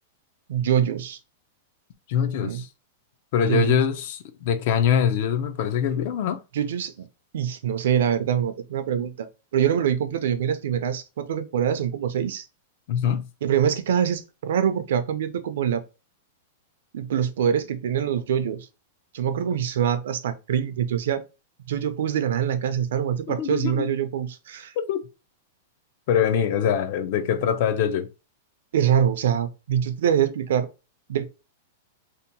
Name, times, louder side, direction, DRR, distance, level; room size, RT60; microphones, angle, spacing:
voice 1, 0.5-1.2 2.4-2.6 3.5-3.8 6.5-7.1 7.3-12.5 13.4-15.8 16.9-18.7 19.1-21.2 21.7-24.7 28.7-30.7 31.1-31.2, right 9 dB, 70° right, 0.4 m, -24 dB
voice 2, 2.1-2.7 3.3-6.4 12.9-13.3 23.4-23.9 24.8-25.0 26.1-28.1, left 8 dB, 45° left, 0.4 m, -23 dB
2.7 x 2.1 x 2.6 m
supercardioid pair, 165°, 0 cm